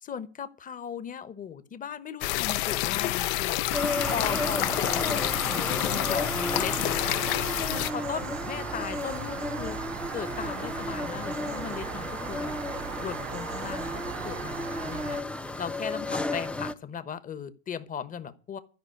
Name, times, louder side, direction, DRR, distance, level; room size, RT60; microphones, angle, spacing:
voice 1, 0.0-3.6 4.1-7.2 7.6-9.8 10.1-12.5 13.0-15.2 15.6-18.6, left 7 dB, 25° left, 1.1 m, -37 dB
sound 1, 2.2-7.9, left 16 dB, 65° left, 0.8 m, -28 dB
sound 2, 3.7-16.7, left 2 dB, 5° left, 0.6 m, -33 dB
sound 3, 3.7-15.2, right 18 dB, 80° right, 0.6 m, -39 dB
13.0 x 5.6 x 9.3 m
supercardioid pair, 130°, 35 cm